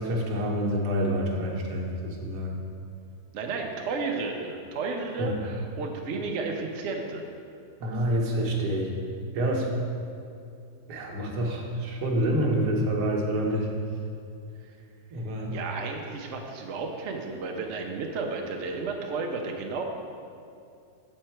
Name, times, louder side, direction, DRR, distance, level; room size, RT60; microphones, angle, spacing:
voice 1, 0.0-2.5 5.2-5.3 7.8-8.9 9.3-9.7 10.9-13.7 15.1-15.6, equal, 80° right, -1 dB, 1.5 m, -27 dB
voice 2, 3.3-7.2 15.5-19.8, right 4 dB, 60° right, 2 dB, 0.8 m, -32 dB
7.5 x 4.5 x 4.4 m, 2.4 s
omnidirectional pair, 1.7 m